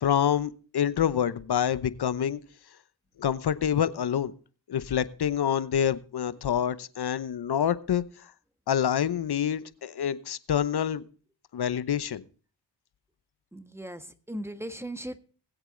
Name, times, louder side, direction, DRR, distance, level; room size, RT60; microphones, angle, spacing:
voice 1, 0.0-2.4 3.2-4.3 4.7-8.0 8.7-11.0 11.5-12.2, left 9 dB, 60° left, 15 dB, 0.9 m, -27 dB
voice 2, 13.5-15.2, right 1 dB, 5° right, 9 dB, 1.4 m, -38 dB
20.5 x 8.0 x 3.8 m, 0.39 s
cardioid pair, 50°, 45 cm